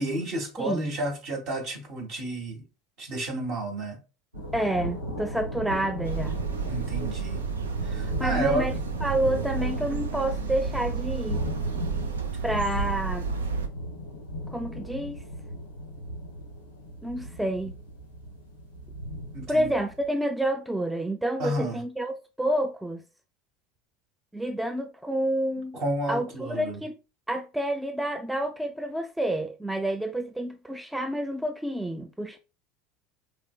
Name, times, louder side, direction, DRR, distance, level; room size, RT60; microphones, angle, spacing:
voice 1, 0.0-2.6 3.0-4.0 6.7-7.4 7.8-8.7 19.3-19.7 21.4-21.8 25.7-26.8, right 1 dB, 50° right, 1.5 m, -31 dB
voice 2, 0.6-0.9 4.5-6.4 8.2-8.7 9.0-11.4 12.4-13.3 14.5-15.2 17.0-17.7 19.5-23.0 24.3-25.8 26.1-27.0 27.3-32.4, right 1 dB, 5° right, 0.4 m, -29 dB
sound 1, 4.3-20.1, equal, 90° right, 1.1 m, -37 dB
sound 2, 6.0-13.7, right 6 dB, 75° right, 0.5 m, -31 dB
5.0 x 3.4 x 2.2 m
figure-of-eight pair, 70°, 0 cm